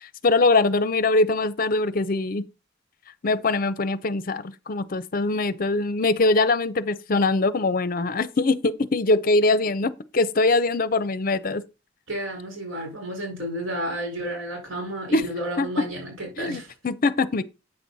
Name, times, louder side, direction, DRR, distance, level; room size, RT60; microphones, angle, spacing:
voice 1, 0.2-2.4 3.2-11.6 15.1-15.2 15.6-15.7 16.4-17.4, left 3 dB, 45° left, 0.6 m, -22 dB
voice 2, 12.1-16.7, right 1 dB, 90° right, 4.6 m, -32 dB
8.7 x 6.2 x 4.0 m
head